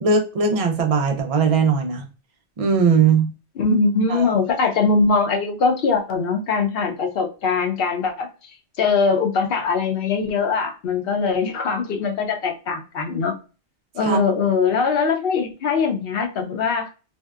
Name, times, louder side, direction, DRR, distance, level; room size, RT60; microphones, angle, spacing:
voice 1, 0.0-2.0 2.6-3.3 4.1-4.3 14.0-14.2, right 5 dB, 70° right, 3 dB, 0.3 m, -19 dB
voice 2, 3.6-8.3 8.8-13.3 13.9-16.9, left 4 dB, 65° left, 3 dB, 0.7 m, -21 dB
2.7 x 2.1 x 2.3 m, 0.33 s
omnidirectional pair, 1.2 m